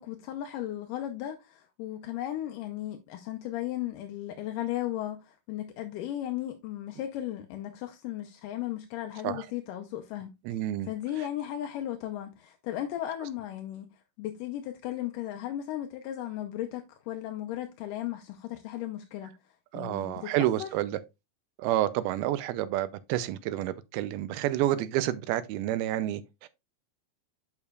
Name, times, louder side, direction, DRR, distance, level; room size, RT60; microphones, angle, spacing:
voice 1, 0.0-13.9 14.2-19.3 19.7-20.7, left 13 dB, 80° left, 2.0 m, -36 dB
voice 2, 10.5-10.9 19.7-21.0 21.6-26.5, right 13 dB, 80° right, 2.5 m, -29 dB
8.7 x 6.4 x 2.4 m
omnidirectional pair, 4.5 m